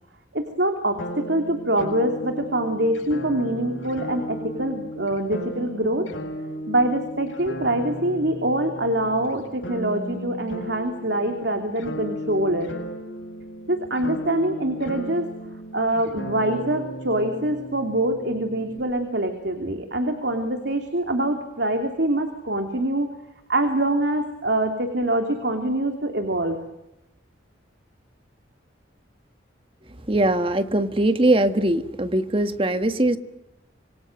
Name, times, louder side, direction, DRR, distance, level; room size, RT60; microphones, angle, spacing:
voice 1, 0.3-6.1 6.7-12.7 13.7-15.3 15.7-23.1 23.5-26.6, right 1 dB, 65° right, 6 dB, 2.9 m, -24 dB
sound 1, 1.0-18.8, equal, 90° left, 7.2 m, -35 dB
voice 2, 30.1-33.2, right 1 dB, 30° right, 9 dB, 1.6 m, -21 dB
27.0 x 24.0 x 7.9 m, 0.91 s
head